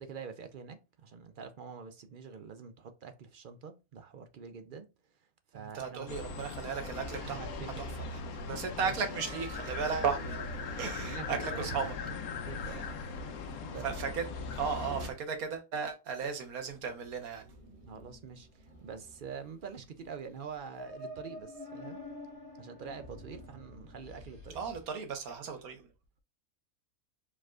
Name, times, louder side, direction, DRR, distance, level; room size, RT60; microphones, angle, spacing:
voice 1, 0.0-6.1 7.2-7.7 8.8-8.9 10.7-11.9 12.5-12.9 13.6-13.9 17.8-22.0 22.6-24.6, right 6 dB, 60° right, 0.5 m, -46 dB
voice 2, 5.5-7.4 7.8-7.9 8.3-11.9 13.8-14.3 14.5-17.5 24.5-25.9, right 6 dB, 85° right, 1.5 m, -35 dB
sound 1, 6.1-15.1, left 4 dB, 90° left, 1.2 m, -39 dB
Percussion, 9.2-13.5 13.8-13.9, right 6 dB, 15° left, 1.8 m, -55 dB
sound 2, 16.7-24.9, left 1 dB, 35° right, 2.2 m, -49 dB
4.9 x 4.2 x 2.4 m
omnidirectional pair, 1.5 m